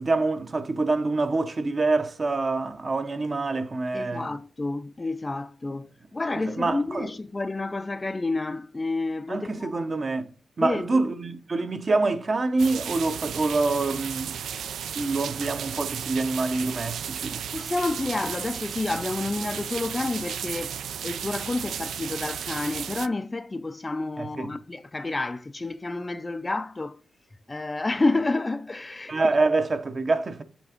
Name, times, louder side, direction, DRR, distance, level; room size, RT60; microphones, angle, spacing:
voice 1, 0.0-4.3 6.6-7.1 9.3-10.3 10.6-14.4 14.9-17.4 24.2-24.5 29.1-30.4, right 3 dB, 35° right, 0.7 m, -26 dB
voice 2, 3.9-9.9 10.6-11.1 17.5-20.8 21.0-27.0 27.5-29.4, left 2 dB, 20° left, 0.3 m, -29 dB
sound 1, 12.6-23.1, right 8 dB, 85° right, 0.3 m, -34 dB
7.3 x 3.4 x 5.0 m
wide cardioid pair, 115°, 0 cm